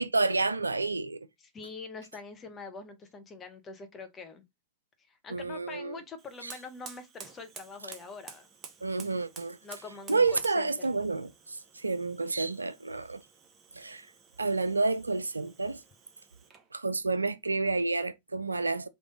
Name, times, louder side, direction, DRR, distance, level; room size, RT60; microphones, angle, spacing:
voice 1, 0.0-1.3 5.3-6.0 6.4-6.5 8.8-9.6 10.1-13.2 13.7-14.1 14.4-15.8 16.7-18.9, right 3 dB, 80° right, 0.3 m, -29 dB
voice 2, 1.4-4.4 5.1-8.5 9.6-10.6, left 4 dB, 25° left, 1.1 m, -44 dB
Fire, 6.2-16.7, right 6 dB, 25° right, 1.0 m, -52 dB
3.4 x 3.4 x 4.0 m
figure-of-eight pair, 90°, 0 cm